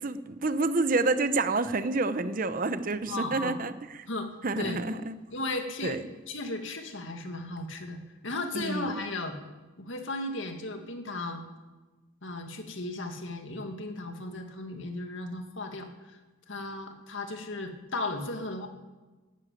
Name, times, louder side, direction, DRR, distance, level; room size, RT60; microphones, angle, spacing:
voice 1, 0.0-3.7 4.4-5.1 5.8-6.0 8.5-9.0, right 3 dB, 40° right, 12 dB, 0.7 m, -28 dB
voice 2, 3.1-3.6 4.1-4.3 4.6-4.8 5.3-6.0 6.3-9.4 9.8-11.4 12.2-16.2 16.5-18.7, left 2 dB, 65° left, 4 dB, 2.0 m, -35 dB
12.0 x 11.0 x 9.2 m, 1.2 s
head